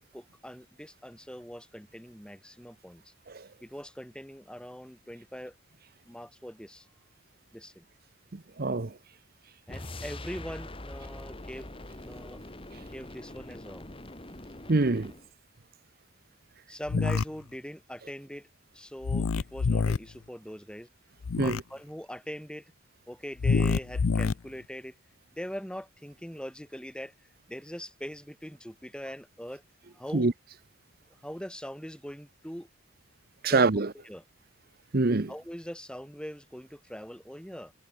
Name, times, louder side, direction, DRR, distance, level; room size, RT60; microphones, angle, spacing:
voice 1, 0.1-3.1 3.6-5.6 6.1-6.9 7.5-7.8 9.7-11.7 12.0-12.4 12.9-13.9 16.7-18.5 18.7-20.9 21.4-22.7 23.1-24.9 25.3-27.1 27.5-29.6 29.9-30.3 31.2-32.7 33.5-33.7 34.0-34.2 35.3-37.7, equal, 5° left, 3.7 m, -42 dB
voice 2, 8.3-8.9 14.7-15.1 21.4-21.6 30.1-30.3 33.4-33.9 34.9-35.3, right 3 dB, 45° right, 0.8 m, -25 dB
sound 1, 9.7-15.3, left 1 dB, 25° left, 1.9 m, -43 dB
sound 2, 16.9-17.2 19.0-20.0 21.2-21.6 23.4-24.3, left 4 dB, 75° left, 0.5 m, -26 dB
head